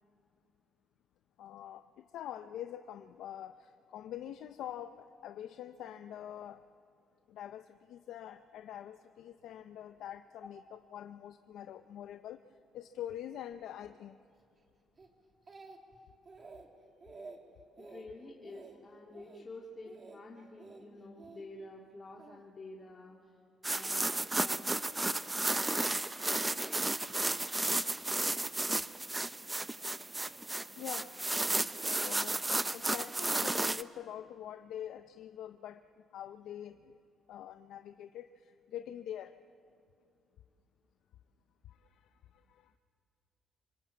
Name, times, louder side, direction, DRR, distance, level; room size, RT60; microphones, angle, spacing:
voice 1, 1.4-6.6 7.3-10.6 10.9-12.4 12.7-14.2 26.8-27.1 30.8-31.1 31.6-32.4 32.7-37.0 37.3-39.3 41.7-42.7, left 11 dB, 80° left, 9 dB, 0.7 m, -45 dB
Speech, 15.0-16.0 16.3-16.7 17.0-17.4 17.8-18.1 18.4-18.8 19.1-19.4 19.9-20.2 20.6-21.4 22.2-22.4, right 3 dB, 35° right, 2.8 m, -51 dB
voice 2, 17.8-23.4 23.7-24.8, left 2 dB, 35° left, -2 dB, 2.7 m, -49 dB
sound 1, 23.6-33.8, right 2 dB, 15° right, 0.6 m, -33 dB
25.5 x 20.0 x 8.5 m, 2.4 s
cardioid pair, 90°, 0 cm